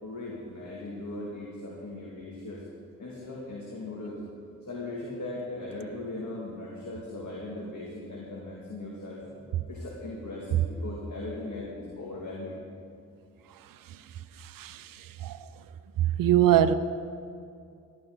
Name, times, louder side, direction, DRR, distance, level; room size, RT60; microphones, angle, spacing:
voice 1, 0.0-2.7 3.0-4.2 4.6-9.2 9.7-12.6, left 2 dB, 60° left, -4 dB, 2.3 m, -38 dB
voice 2, 14.4-15.4 16.2-16.7, right 11 dB, 90° right, 13 dB, 0.5 m, -23 dB
14.5 x 12.0 x 3.9 m, 2.4 s
cardioid pair, 50°, 33 cm